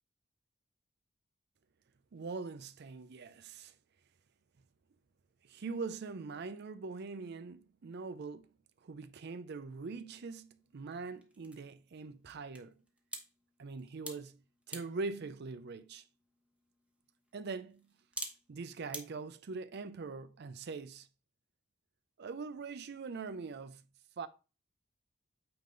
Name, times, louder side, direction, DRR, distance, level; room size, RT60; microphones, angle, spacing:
voice 1, 2.1-3.7 5.4-8.5 8.8-12.8 13.6-14.4 14.7-16.0 17.3-17.9 18.5-21.1 22.2-23.8 24.2-24.3, right 4 dB, 55° right, 0.5 m, -42 dB
sound 1, 9.7-19.0, right 1 dB, 5° right, 1.0 m, -51 dB
8.7 x 3.7 x 3.8 m
head